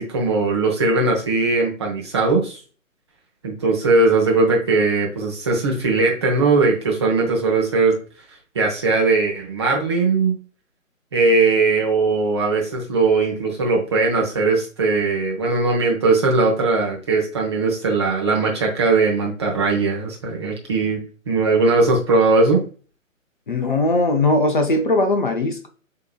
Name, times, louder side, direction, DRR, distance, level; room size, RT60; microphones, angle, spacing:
voice 1, 0.0-2.6 3.4-7.9 8.5-10.4 11.1-21.0 21.3-22.6, right 3 dB, 20° right, -1 dB, 0.7 m, -19 dB
voice 2, 23.5-25.7, left 2 dB, 40° left, 5 dB, 0.6 m, -19 dB
7.5 x 2.9 x 2.3 m, 0.38 s
figure-of-eight pair, 140°, 41 cm